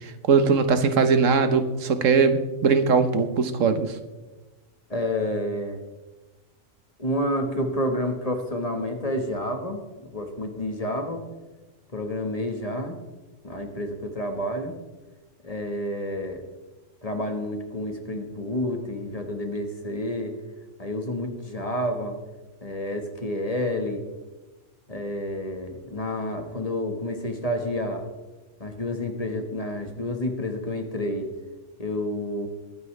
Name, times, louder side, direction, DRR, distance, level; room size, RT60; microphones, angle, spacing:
voice 1, 0.3-3.9, right 5 dB, 80° right, 9 dB, 1.4 m, -20 dB
voice 2, 4.9-5.8 7.0-9.8 10.1-11.2 11.9-13.0 13.4-14.7 15.4-16.4 17.0-20.3 20.8-22.2 22.6-24.0 24.9-28.0 28.6-31.3 31.8-32.5, left 1 dB, 30° left, 4 dB, 1.5 m, -29 dB
22.0 x 9.4 x 3.3 m, 1.1 s
omnidirectional pair, 1.3 m